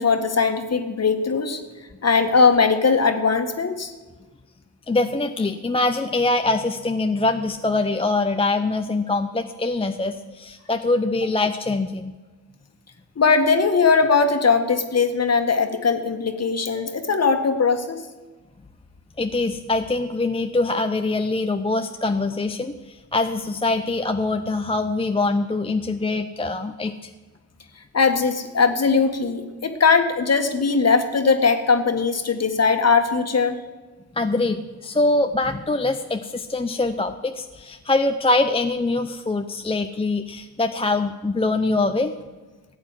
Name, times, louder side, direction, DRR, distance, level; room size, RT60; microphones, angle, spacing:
voice 1, 0.0-1.6 2.0-3.9 13.2-18.0 27.9-33.6, left 5 dB, 35° left, 7 dB, 1.7 m, -20 dB
voice 2, 4.9-12.1 19.2-27.1 34.2-42.1, left 2 dB, 15° left, 7 dB, 0.7 m, -23 dB
14.5 x 8.3 x 7.5 m, 1.3 s
supercardioid pair, 60°, 44 cm